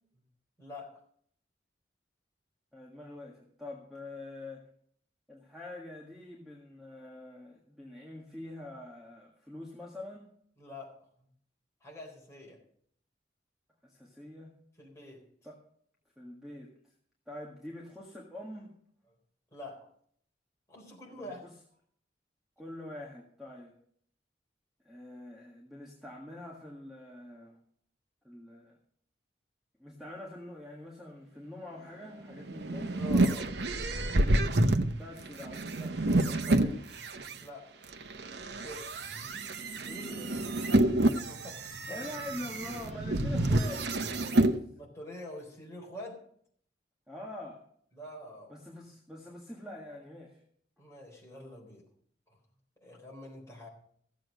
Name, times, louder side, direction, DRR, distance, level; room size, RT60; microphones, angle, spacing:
voice 1, 0.6-1.0 10.6-10.9 11.8-12.6 14.8-15.2 19.5-19.9 20.7-21.4 32.9-33.5 37.4-37.7 38.5-38.9 39.7-40.4 41.2-42.1 44.4-46.2 47.9-48.6 50.8-51.9 52.3-52.4 52.8-53.7, left 1 dB, 15° left, -2 dB, 4.0 m, -46 dB
voice 2, 2.7-4.7 5.3-10.3 13.8-14.5 15.4-15.6 16.2-16.7 17.3-18.7 21.1-21.5 22.6-23.7 24.8-27.6 28.2-28.8 29.8-33.0 35.0-36.9 39.8-39.9 41.9-44.6 47.1-47.6 48.5-50.4, left 1 dB, 5° right, -3 dB, 1.7 m, -45 dB
sound 1, 32.3-37.3 37.9-44.6, right 1 dB, 65° right, 0.8 m, -28 dB
15.5 x 7.7 x 6.2 m, 0.63 s
head